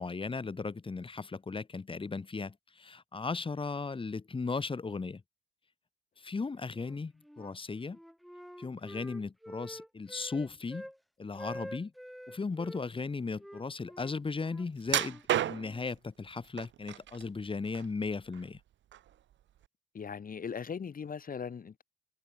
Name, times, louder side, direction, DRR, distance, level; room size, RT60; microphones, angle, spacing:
voice 1, 0.0-5.2 6.2-8.0 8.6-10.9 11.2-11.9 12.3-18.6, left 4 dB, 25° left, 2.3 m, -36 dB
Wind instrument woodwind instrument, 6.7-7.6 7.9-11.0 11.3-12.8 13.4-15.9, equal, ahead, 3.7 m, -47 dB
sound 1, 14.9-15.9 16.6-17.2 17.6-18.6 18.9-19.1 19.6-19.7, right 12 dB, 70° right, 1.4 m, -32 dB
voice 2, 19.9-21.8, left 6 dB, 45° left, 6.6 m, -39 dB
cardioid pair, 90°, 20 cm